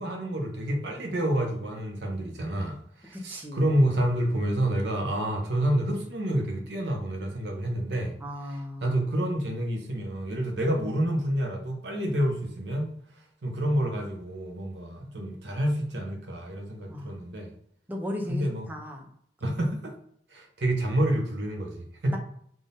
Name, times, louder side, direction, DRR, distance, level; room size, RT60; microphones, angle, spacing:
voice 1, 0.0-2.8 3.0-8.1 8.5-12.9 13.4-17.5 18.3-18.7 19.4-19.9 20.3-22.2, right 1 dB, 75° right, 3 dB, 0.9 m, -28 dB
voice 2, 3.1-3.9 8.2-9.0 16.9-17.1 17.9-19.0 22.1-22.2, left 1 dB, 10° right, 2 dB, 0.6 m, -36 dB
3.7 x 2.3 x 3.9 m, 0.67 s
head